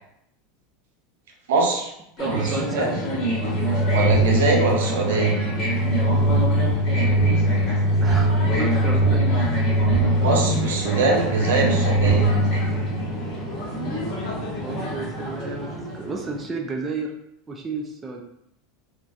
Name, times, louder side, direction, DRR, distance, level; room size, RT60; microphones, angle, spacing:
voice 1, 1.5-1.9 2.2-3.0 3.9-5.3 10.2-12.3, right 3 dB, 80° right, 0 dB, 0.6 m, -22 dB
sound 1, 2.2-16.4, right 1 dB, 50° left, 1.1 m, -28 dB
voice 2, 2.2-2.9 8.0-8.3 8.6-9.2 9.5-9.6 14.6-15.7 16.0-17.1 17.5-18.2, right 3 dB, 20° right, 1 dB, 0.4 m, -31 dB
sound 2, 2.8-13.4, right 1 dB, 5° right, 1.2 m, -22 dB
2.2 x 2.2 x 2.6 m, 0.78 s
hypercardioid pair, 110°, 0 cm